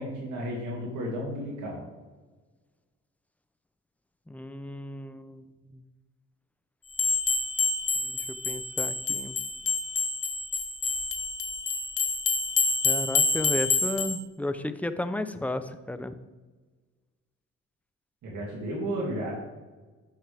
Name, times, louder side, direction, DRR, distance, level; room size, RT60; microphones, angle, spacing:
voice 1, 0.0-1.8 18.2-19.4, equal, 75° right, -4 dB, 2.5 m, -33 dB
voice 2, 4.3-5.8 8.0-8.2 8.5-9.4 12.8-16.1, left 1 dB, 5° left, 11 dB, 0.6 m, -33 dB
sound 1, 6.9-14.2, left 4 dB, 50° left, 1.0 m, -27 dB
12.5 x 5.9 x 3.5 m, 1.3 s
cardioid pair, 90°, 30 cm